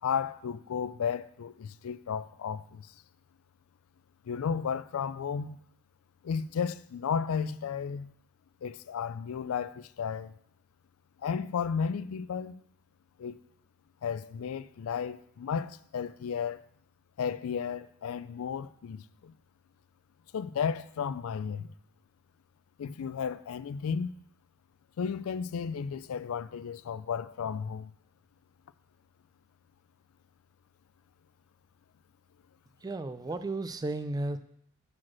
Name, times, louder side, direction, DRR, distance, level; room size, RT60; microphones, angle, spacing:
voice 1, 0.0-2.9 4.3-5.6 6.2-8.1 8.6-10.3 11.2-12.6 13.2-13.4 14.0-16.6 17.2-19.3 20.3-21.7 22.8-24.1 25.0-27.9, left 6 dB, 70° left, 0.3 m, -33 dB
voice 2, 32.8-34.4, right 2 dB, 20° right, 0.3 m, -33 dB
5.8 x 4.9 x 6.0 m
head